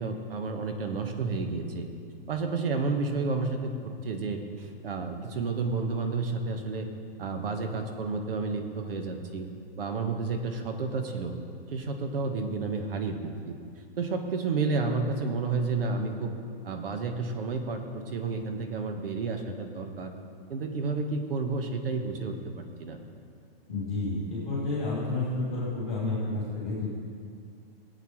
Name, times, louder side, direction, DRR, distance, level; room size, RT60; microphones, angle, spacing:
voice 1, 0.0-1.9 2.3-3.7 4.0-6.9 7.2-9.5 9.8-11.3 11.7-13.6 14.0-16.3 16.6-20.1 20.5-23.0, right 4 dB, 70° right, 5 dB, 1.3 m, -31 dB
voice 2, 23.7-26.9, left 2 dB, ahead, -23 dB, 0.3 m, -30 dB
18.0 x 8.2 x 3.1 m, 2.3 s
hypercardioid pair, 175°, 30 cm